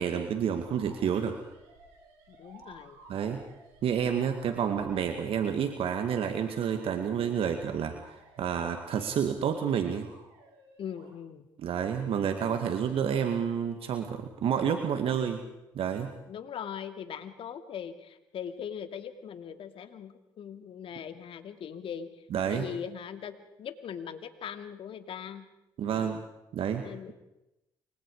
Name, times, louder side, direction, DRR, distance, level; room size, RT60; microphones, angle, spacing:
voice 1, 0.0-1.4 3.1-3.4 3.8-10.1 11.6-15.4 15.7-16.1 22.3-22.6 25.8-26.2 26.5-27.1, right 8 dB, 65° right, 6 dB, 2.2 m, -29 dB
sound 1, 0.6-5.1 5.9-9.3 9.8-11.1 11.9-12.6 12.9-13.4 15.1-15.2, right 2 dB, 85° right, 6.9 m, -55 dB
voice 2, 2.3-3.0 10.8-11.5 12.4-12.7 16.3-25.4 25.9-26.2 26.8-27.1, left 8 dB, 60° left, 9 dB, 2.6 m, -40 dB
29.0 x 24.0 x 5.0 m, 0.89 s
supercardioid pair, 60°, 10 cm